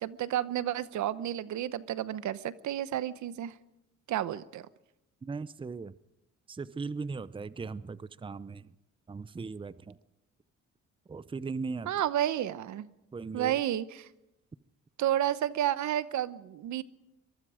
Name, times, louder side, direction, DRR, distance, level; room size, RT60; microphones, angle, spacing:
voice 1, 0.0-3.5 4.1-4.7 11.9-12.9 13.3-14.1 15.0-16.8, right 12 dB, 75° right, 15 dB, 0.9 m, -31 dB
voice 2, 5.2-5.9 6.5-8.7 9.1-10.0 11.1-11.9 13.1-13.6, right 4 dB, 15° right, 16 dB, 0.6 m, -38 dB
23.0 x 22.5 x 5.0 m, 0.90 s
cardioid pair, 90°, 30 cm